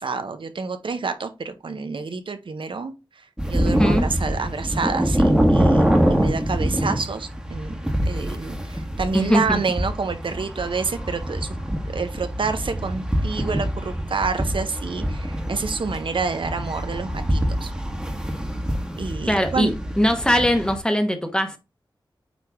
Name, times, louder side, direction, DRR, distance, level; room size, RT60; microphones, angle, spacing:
voice 1, 0.0-7.8 8.1-11.6 11.8-17.7 19.0-19.7, right 4 dB, 75° right, 0.7 m, -28 dB
sound 1, 3.4-20.8, equal, 10° right, 1.4 m, -25 dB
voice 2, 3.7-4.1 9.1-9.6 19.3-21.6, equal, 10° left, 1.2 m, -21 dB
8.9 x 3.3 x 3.5 m
wide cardioid pair, 85°, 9 cm